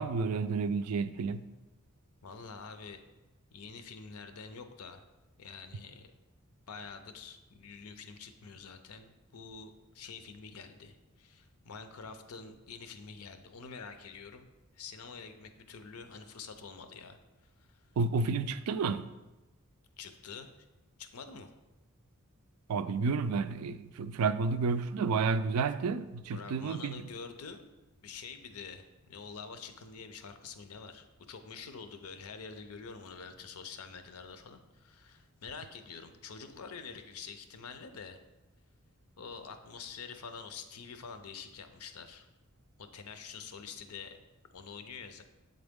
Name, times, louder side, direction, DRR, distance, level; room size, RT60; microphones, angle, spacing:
voice 1, 0.0-1.4 18.0-19.1 22.7-27.0, right 4 dB, 80° right, 13 dB, 0.3 m, -31 dB
voice 2, 2.2-3.0 3.5-5.0 5.4-6.1 6.7-14.5 14.7-17.9 20.0-20.5 21.0-21.5 26.3-27.7 28.0-38.2 39.2-42.3 42.8-44.2 44.5-45.2, left 5 dB, 80° left, 8 dB, 0.6 m, -47 dB
7.9 x 3.9 x 3.6 m, 1.1 s
head